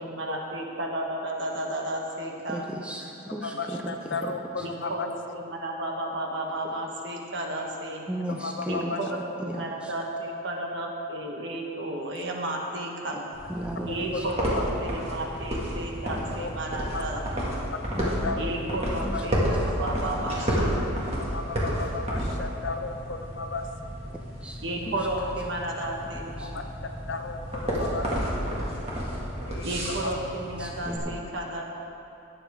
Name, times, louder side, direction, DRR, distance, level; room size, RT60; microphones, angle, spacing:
voice 1, 0.0-2.7 4.6-8.1 8.7-13.2 13.9-17.6 18.4-20.8 24.6-26.6 29.6-31.6, right 1 dB, 60° right, 0 dB, 1.3 m, -33 dB
voice 2, 2.5-4.3 4.6-4.7 8.1-9.9 13.5-14.3 18.0-18.3 19.0-19.8 20.1-20.6 24.4-25.7 26.3-26.5 30.6-31.3, right 1 dB, 5° right, 0 dB, 0.5 m, -36 dB
voice 3, 3.4-5.1 8.4-9.0 12.1-12.2 13.9-14.6 16.4-16.5 16.9-17.0 18.0-18.5 19.1-19.2 21.2-24.2 26.5-26.6 27.1-28.7 29.5-30.1, left 3 dB, 55° left, 6 dB, 0.7 m, -35 dB
sound 1, 13.3-31.0, equal, 30° right, 1.9 m, -31 dB
18.0 x 7.2 x 3.5 m, 2.8 s
head